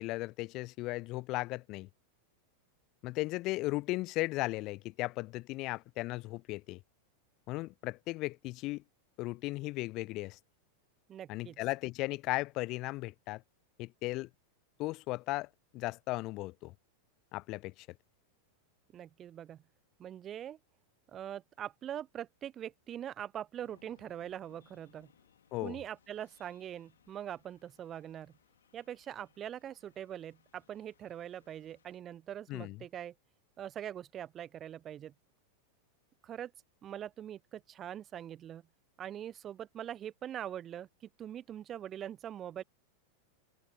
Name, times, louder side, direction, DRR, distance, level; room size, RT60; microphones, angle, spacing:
voice 1, 0.0-1.9 3.0-6.8 7.5-8.8 9.2-10.4 11.3-13.4 13.8-14.3 14.8-16.7 17.3-17.9 25.5-25.8 32.5-32.8, left 20 dB, 40° left, 0.4 m, -36 dB
voice 2, 11.1-11.6 18.9-19.6 20.0-20.6 21.1-25.1 25.6-28.3 28.7-33.1 33.6-35.1 36.2-36.5 36.8-38.6 39.0-42.6, right 10 dB, 30° right, 0.9 m, -43 dB
sound 1, 23.6-32.0, left 8 dB, 65° left, 3.0 m, -68 dB
figure-of-eight pair, 90°, 0 cm